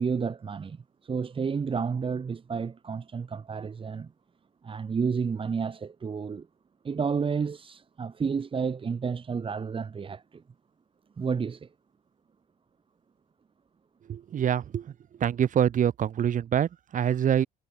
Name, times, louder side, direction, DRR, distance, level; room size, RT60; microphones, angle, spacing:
voice 1, 0.0-4.1 4.6-6.5 6.8-10.4 11.2-11.7, right 5 dB, 30° right, 3.3 m, -31 dB
voice 2, 14.1-14.9 15.2-17.5, right 9 dB, 50° right, 3.5 m, -25 dB
cardioid pair, 110°, 17 cm